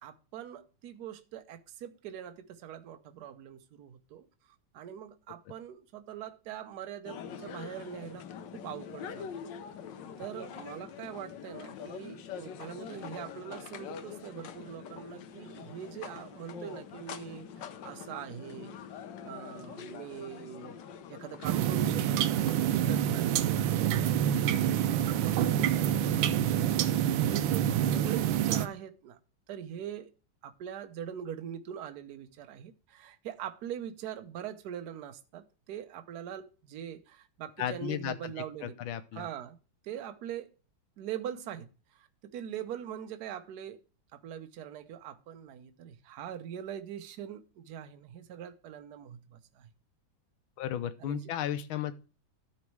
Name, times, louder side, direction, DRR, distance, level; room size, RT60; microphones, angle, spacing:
voice 1, 0.0-4.3 4.7-8.3 8.5-9.3 10.2-18.8 19.2-20.8 21.1-29.2 29.5-30.1 30.4-38.8 39.1-39.6 39.8-40.5 41.0-43.8 44.1-49.7 51.0-51.3, right 9 dB, 60° right, 1.2 m, -42 dB
sound 1, 7.0-23.0, left 7 dB, 70° left, 1.4 m, -44 dB
sound 2, 21.4-28.7, right 10 dB, 85° right, 1.4 m, -27 dB
voice 2, 37.6-38.1 38.6-39.3 50.6-51.9, left 10 dB, 90° left, 1.5 m, -34 dB
12.5 x 4.2 x 4.6 m
omnidirectional pair, 2.2 m